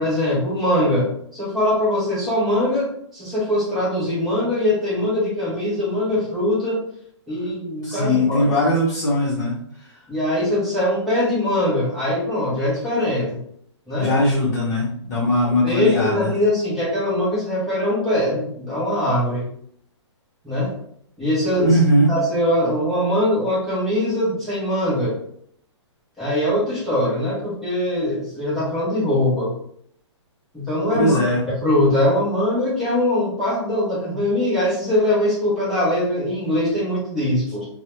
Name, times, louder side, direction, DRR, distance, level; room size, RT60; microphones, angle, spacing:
voice 1, 0.0-6.8 7.3-8.6 10.1-13.4 13.9-14.1 15.4-19.5 20.4-20.7 21.2-21.8 22.1-25.2 26.2-29.5 30.5-31.2 31.6-37.7, left 1 dB, ahead, -11 dB, 0.5 m, -22 dB
voice 2, 7.8-9.6 14.0-16.3 21.6-22.1 30.9-31.4, left 1 dB, 40° left, -7 dB, 0.7 m, -19 dB
2.2 x 2.0 x 2.9 m, 0.65 s
hypercardioid pair, 170°, 15 cm